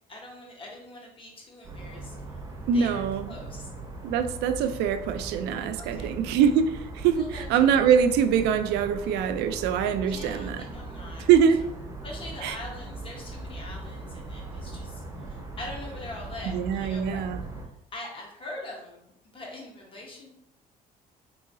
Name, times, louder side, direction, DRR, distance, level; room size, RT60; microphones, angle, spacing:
voice 1, 0.1-2.1 2.7-3.0 3.3-3.7 5.8-6.1 7.1-7.9 10.0-11.3 12.0-15.0 15.3-17.2 17.9-20.3, left 2 dB, 30° left, -1 dB, 1.1 m, -42 dB
sound 1, 1.6-17.7, right 2 dB, 20° right, 0.7 m, -39 dB
voice 2, 2.7-3.3 4.0-10.6 11.3-11.6 12.4-12.5 16.4-17.4, right 7 dB, 85° right, 9 dB, 0.4 m, -23 dB
3.8 x 3.0 x 2.6 m, 0.77 s
cardioid pair, 110°, 17 cm